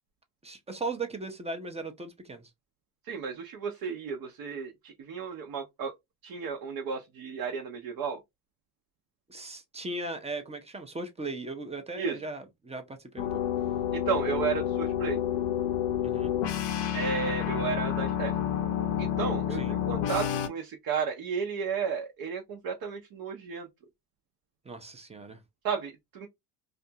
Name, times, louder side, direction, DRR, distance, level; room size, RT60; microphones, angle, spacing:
voice 1, 0.4-2.5 9.3-13.4 16.0-16.3 19.5-19.7 24.6-25.4, right 2 dB, 15° right, 0.5 m, -38 dB
voice 2, 3.1-5.9 6.2-8.2 12.0-12.2 13.9-15.2 16.9-18.4 19.0-23.7 25.6-26.3, right 6 dB, 55° right, 0.7 m, -33 dB
sound 1, 13.2-20.5, left 10 dB, 90° left, 0.7 m, -29 dB
2.5 x 2.3 x 2.7 m
cardioid pair, 100°, 42 cm